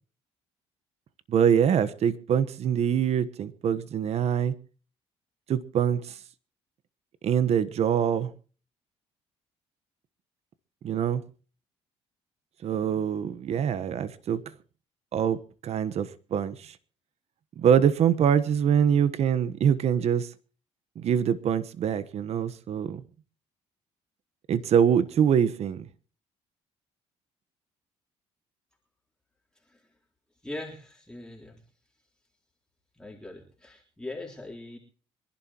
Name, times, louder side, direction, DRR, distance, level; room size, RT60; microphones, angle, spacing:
voice 1, 1.3-4.5 5.5-6.2 7.2-8.3 10.8-11.2 12.6-14.5 15.1-16.8 17.6-20.3 20.9-23.0 24.5-25.9, right 8 dB, 60° right, 1.2 m, -24 dB
voice 2, 30.4-31.6 33.0-34.8, left 2 dB, 5° left, 3.7 m, -41 dB
25.5 x 11.5 x 3.0 m
cardioid pair, 85°, 12 cm